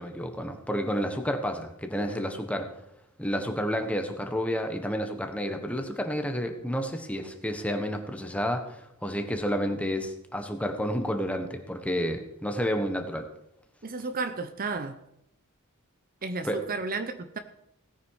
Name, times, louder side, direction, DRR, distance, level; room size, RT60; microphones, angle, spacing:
voice 1, 0.0-2.7 3.2-13.3 16.4-16.6, equal, 5° left, 5 dB, 1.4 m, -30 dB
voice 2, 13.8-15.0 16.2-17.4, right 3 dB, 40° right, 9 dB, 0.8 m, -32 dB
17.0 x 9.4 x 4.9 m, 0.84 s
head